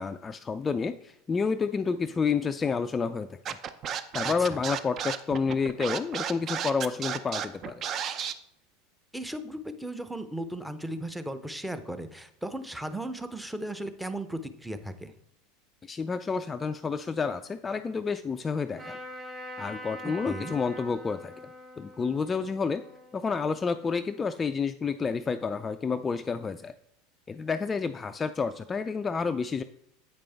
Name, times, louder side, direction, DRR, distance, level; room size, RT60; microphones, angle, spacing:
voice 1, 0.0-3.6 4.1-7.8 15.8-19.0 19.6-21.3 21.8-22.8 23.1-26.7 27.3-29.6, left 5 dB, 25° left, 9 dB, 0.3 m, -29 dB
Scratching (performance technique), 3.5-8.3, right 8 dB, 40° right, 0.6 m, -32 dB
voice 2, 4.2-4.6 9.1-15.1 20.0-20.6, right 1 dB, 5° right, 9 dB, 0.7 m, -36 dB
Trumpet, 18.8-24.3, left 1 dB, 20° right, 3.1 m, -44 dB
8.5 x 5.2 x 3.4 m, 0.75 s
hypercardioid pair, 90°, 0 cm